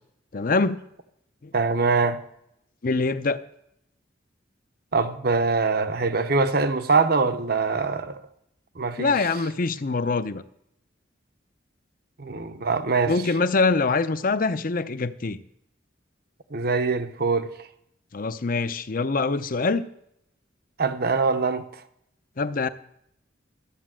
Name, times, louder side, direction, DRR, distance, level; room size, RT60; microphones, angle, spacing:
voice 1, 0.3-0.8 1.4-1.5 2.8-3.4 9.0-10.4 13.1-15.4 18.1-19.8 22.4-22.7, left 3 dB, 45° left, 0.6 m, -24 dB
voice 2, 1.5-2.2 4.9-8.2 8.8-9.3 12.2-13.2 16.5-17.7 20.8-21.7, right 4 dB, 55° right, 0.9 m, -23 dB
13.0 x 8.1 x 7.6 m
head